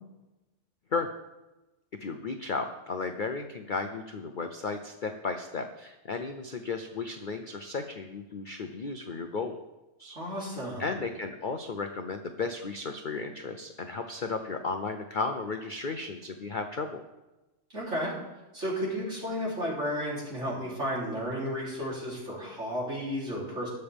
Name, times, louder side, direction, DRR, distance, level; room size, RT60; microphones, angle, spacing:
voice 1, 2.0-9.6 10.0-10.2 10.8-17.0, left 4 dB, 50° left, 6 dB, 0.6 m, -34 dB
voice 2, 10.2-10.9 17.7-18.1 18.5-23.7, equal, 45° right, -5 dB, 3.7 m, -33 dB
20.5 x 6.9 x 3.5 m, 1.1 s
omnidirectional pair, 1.6 m